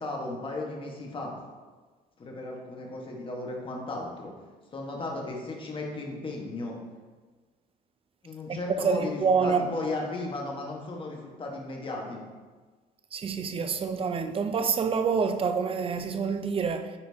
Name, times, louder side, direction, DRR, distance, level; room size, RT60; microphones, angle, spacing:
voice 1, 0.0-1.3 2.2-4.3 4.7-6.8 8.2-12.2, left 2 dB, 30° left, 1.3 m, -35 dB
voice 2, 8.5-9.7 13.1-17.0, right 5 dB, 35° right, 0.5 m, -27 dB
9.7 x 4.3 x 2.8 m
cardioid pair, 110°, 17 cm